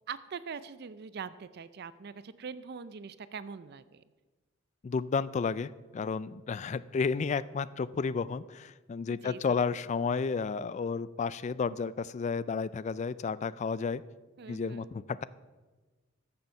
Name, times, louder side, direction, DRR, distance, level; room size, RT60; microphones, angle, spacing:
voice 1, 0.1-4.0 9.1-9.7 14.4-14.9, right 6 dB, 50° right, 15 dB, 0.4 m, -43 dB
voice 2, 4.8-14.0 14.5-15.2, left 5 dB, 35° left, 17 dB, 0.3 m, -32 dB
14.0 x 6.9 x 5.8 m, 1.3 s
head